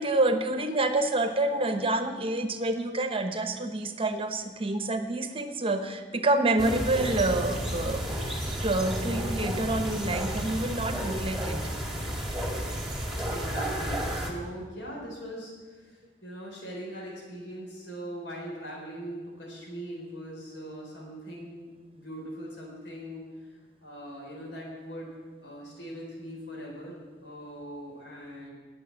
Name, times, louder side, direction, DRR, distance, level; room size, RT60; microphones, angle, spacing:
voice 1, 0.0-8.4 8.6-11.7, right 2 dB, 30° right, 7 dB, 1.0 m, -28 dB
sound 1, 6.6-14.3, equal, ahead, 2.0 m, -32 dB
voice 2, 13.3-25.2 25.4-28.5, equal, 85° left, -3 dB, 4.1 m, -41 dB
19.5 x 6.9 x 7.4 m, 1.4 s
head